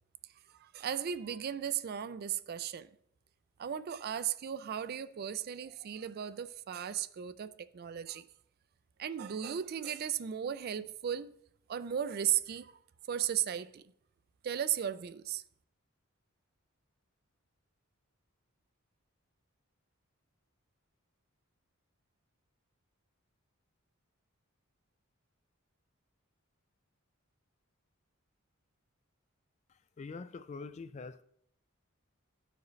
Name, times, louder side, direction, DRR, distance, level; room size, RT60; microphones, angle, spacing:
voice 1, 0.5-2.9 3.6-8.3 9.0-11.4 11.7-12.7 13.1-13.8 14.4-15.4, right 9 dB, 45° right, 0.3 m, -36 dB
voice 2, 30.0-31.2, left 4 dB, 30° left, 0.3 m, -44 dB
13.0 x 4.8 x 3.1 m
head